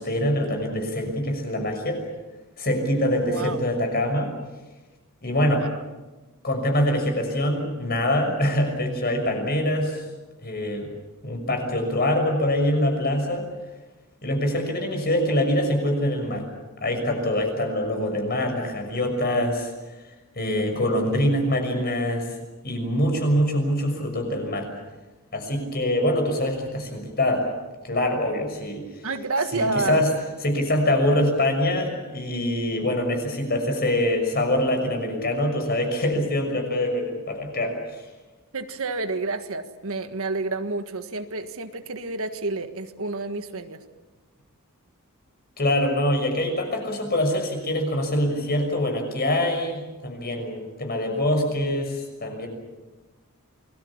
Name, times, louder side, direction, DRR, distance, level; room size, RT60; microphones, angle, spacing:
voice 1, 0.0-2.1 2.6-4.3 5.2-5.7 6.4-10.0 10.4-10.9 11.2-13.5 14.2-16.5 16.8-19.7 20.3-22.3 22.6-24.7 25.3-27.5 27.8-28.8 29.5-30.1 30.4-38.0 45.6-52.5, left 1 dB, 45° left, 4 dB, 6.3 m, -24 dB
voice 2, 3.3-3.6 5.5-5.7 29.0-30.0 38.5-43.8, right 3 dB, 65° right, 8 dB, 1.6 m, -29 dB
28.0 x 21.0 x 7.3 m, 1.2 s
head